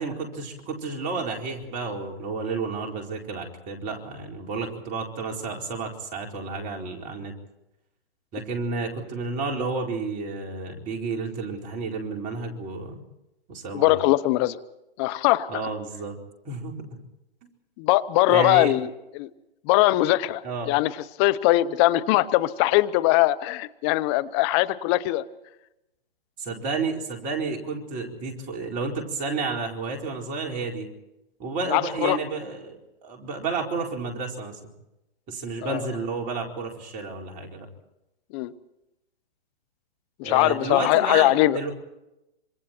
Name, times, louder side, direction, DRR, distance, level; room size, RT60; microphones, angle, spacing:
voice 1, 0.0-7.3 8.3-13.0 13.5-14.0 15.5-16.2 16.4-16.9 17.4-17.5 18.3-18.8 20.4-20.7 26.4-30.9 31.4-34.6 35.3-37.7 40.2-41.7, right 4 dB, 25° right, 1 dB, 4.3 m, -31 dB
voice 2, 13.7-14.6 15.0-15.6 17.8-18.9 19.1-19.3 19.7-20.9 21.2-25.2 31.7-32.2 35.6-35.8 38.3-38.5 40.2-41.6, left 17 dB, 25° left, 15 dB, 0.9 m, -21 dB
26.5 x 26.0 x 4.5 m, 0.90 s
hypercardioid pair, 135°, 30 cm